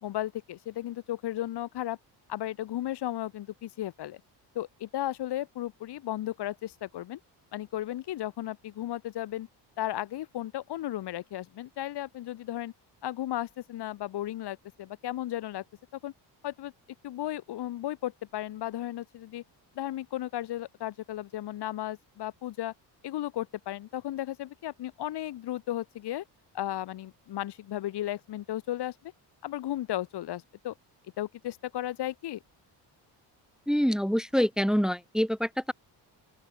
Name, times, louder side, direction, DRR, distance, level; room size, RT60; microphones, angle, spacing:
voice 1, 0.0-2.0 2.3-4.2 4.5-7.2 7.5-9.5 9.8-12.7 13.0-15.6 16.0-16.1 16.4-16.7 17.0-19.4 19.7-22.7 23.0-26.2 26.5-29.1 29.4-30.7 31.2-32.4, left 13 dB, 70° left, 2.6 m, -35 dB
voice 2, 33.7-35.7, equal, ahead, 0.4 m, -26 dB
open air
cardioid pair, 140°, 42 cm